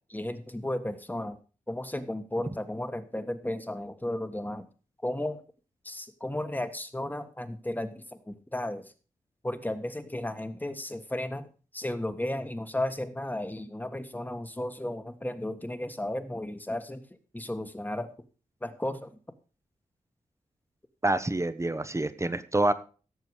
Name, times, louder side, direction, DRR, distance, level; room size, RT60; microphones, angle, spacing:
voice 1, 0.1-1.4 1.7-4.6 5.0-5.4 5.8-8.9 9.4-11.5 11.7-17.0 17.3-18.1 18.6-19.1, left 1 dB, 10° left, 9 dB, 1.5 m, -34 dB
voice 2, 21.0-22.7, right 2 dB, 20° right, 12 dB, 1.0 m, -27 dB
16.0 x 6.9 x 4.8 m, 0.37 s
cardioid pair, 75°, 14 cm